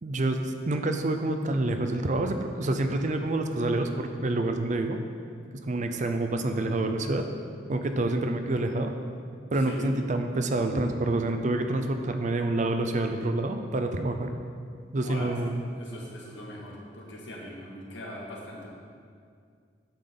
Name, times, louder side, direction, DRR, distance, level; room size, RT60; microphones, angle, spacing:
voice 1, 0.0-5.0 5.5-7.3 7.7-8.9 9.5-14.3 14.9-15.6, right 2 dB, 40° right, 6 dB, 0.5 m, -27 dB
voice 2, 15.0-18.7, equal, 65° left, -3 dB, 1.7 m, -41 dB
9.0 x 3.9 x 6.7 m, 2.2 s
head